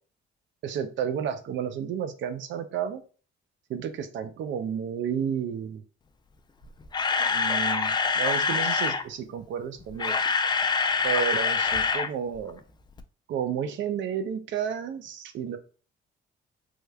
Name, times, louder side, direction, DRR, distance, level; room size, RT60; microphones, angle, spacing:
voice 1, 0.6-3.0 3.7-5.8 7.2-10.2 11.0-12.6 13.3-15.6, right 8 dB, 70° right, 10 dB, 0.5 m, -31 dB
Camera, 6.6-9.0 9.8-12.1 12.4-12.5 13.0-13.1, left 5 dB, 20° left, 0.3 m, -25 dB
3.4 x 3.1 x 2.2 m, 0.39 s
cardioid pair, 90°, 20 cm